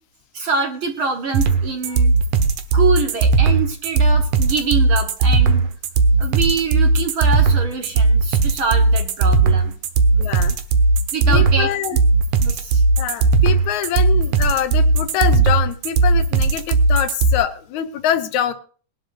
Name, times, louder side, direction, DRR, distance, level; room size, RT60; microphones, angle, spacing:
voice 1, 0.3-2.2 2.7-5.7 6.2-9.7 11.1-11.7 12.4-12.8, right 5 dB, 50° right, 5 dB, 1.8 m, -24 dB
sound 1, 1.3-17.3, right 3 dB, 80° right, 2.6 m, -16 dB
voice 2, 10.2-10.6 11.3-12.0 13.0-18.5, left 10 dB, 75° left, 9 dB, 2.3 m, -24 dB
21.5 x 11.5 x 2.6 m, 0.41 s
omnidirectional pair, 3.4 m